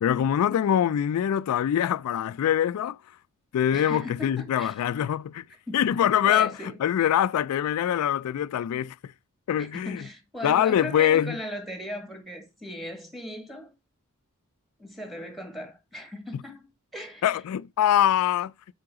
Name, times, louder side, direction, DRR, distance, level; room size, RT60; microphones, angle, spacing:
voice 1, 0.0-3.0 3.5-5.4 5.7-6.5 6.8-9.1 9.5-10.0 10.4-11.4 16.3-16.4 17.2-18.5, left 10 dB, 75° left, 0.3 m, -24 dB
voice 2, 3.7-4.7 5.7-5.8 6.3-6.8 9.6-13.7 14.8-17.3, equal, ahead, 1.7 m, -38 dB
7.7 x 4.8 x 3.6 m
head